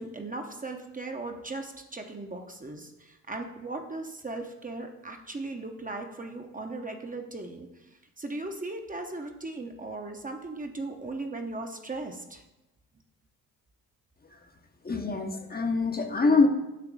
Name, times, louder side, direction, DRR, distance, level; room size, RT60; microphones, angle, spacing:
voice 1, 0.0-12.4, right 2 dB, 20° right, 4 dB, 0.9 m, -38 dB
voice 2, 14.8-16.5, left 3 dB, 25° left, 4 dB, 0.9 m, -24 dB
7.7 x 2.9 x 6.1 m, 0.97 s
hypercardioid pair, 55°, 39 cm